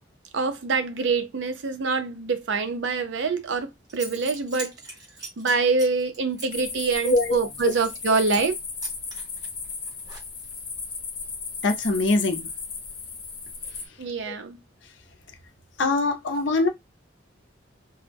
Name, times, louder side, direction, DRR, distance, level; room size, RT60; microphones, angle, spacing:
voice 1, 0.3-4.7 5.4-8.6 14.0-14.6 16.3-16.4, right 4 dB, 75° right, 0.5 m, -25 dB
Zipper (clothing) / Coin (dropping), 3.5-3.6 3.9-8.0 8.3-8.5 8.8-10.6, right 1 dB, 20° right, 0.8 m, -40 dB
sound 1, 6.5-13.9, left 5 dB, 30° left, 0.6 m, -36 dB
voice 2, 7.0-7.4 11.6-12.5 14.3-14.4 15.8-16.7, left 2 dB, 75° left, 0.6 m, -22 dB
2.1 x 2.0 x 3.3 m
head